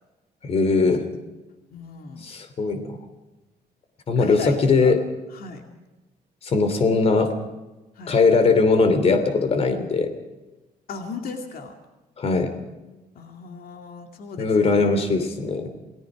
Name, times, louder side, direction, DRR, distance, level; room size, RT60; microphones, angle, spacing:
voice 1, 0.4-1.1 2.2-2.8 4.1-5.0 6.4-7.3 8.1-10.1 12.2-12.5 14.4-15.7, left 4 dB, 35° left, 8 dB, 2.8 m, -20 dB
voice 2, 1.7-2.2 4.2-4.9 5.3-5.6 8.0-8.1 10.9-11.8 13.1-15.1, left 4 dB, 60° left, 4 dB, 2.4 m, -37 dB
28.5 x 18.5 x 5.0 m, 1.1 s
cardioid pair, 175°, 17 cm